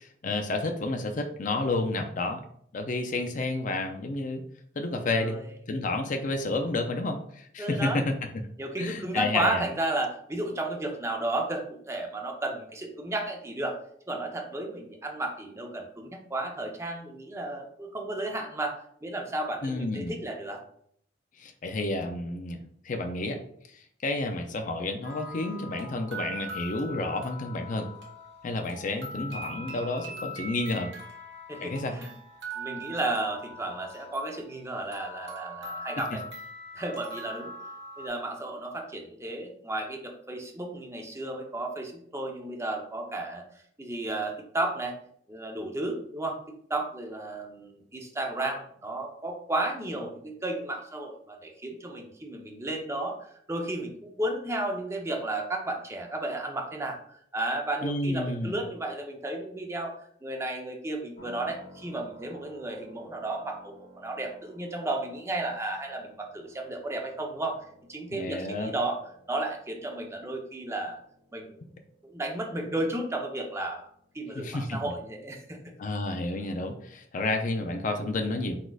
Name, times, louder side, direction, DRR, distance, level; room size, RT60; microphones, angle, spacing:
voice 1, 0.0-2.4 2.7-4.4 4.8-5.4 5.7-8.1 8.8-9.6 19.6-20.2 21.4-22.6 22.8-23.4 23.7-27.9 28.4-30.9 31.6-32.0 57.8-58.6 68.1-68.7 74.3-74.8 75.8-78.6, left 2 dB, 45° left, 5 dB, 0.5 m, -30 dB
voice 2, 5.0-5.5 7.6-8.1 8.6-13.8 14.1-20.6 31.5-32.1 32.5-36.2 36.8-37.5 38.0-43.4 43.8-44.9 45.3-46.4 46.7-59.9 60.2-67.6 67.9-69.0 69.3-71.0 71.3-71.7 72.0-73.8 74.1-75.6, right 2 dB, 15° right, 1 dB, 0.7 m, -33 dB
sound 1, 25.0-38.1, right 1 dB, 75° right, 1.4 m, -41 dB
sound 2, 61.2-75.0, equal, 75° left, 1.6 m, -55 dB
4.7 x 4.2 x 2.4 m, 0.66 s
head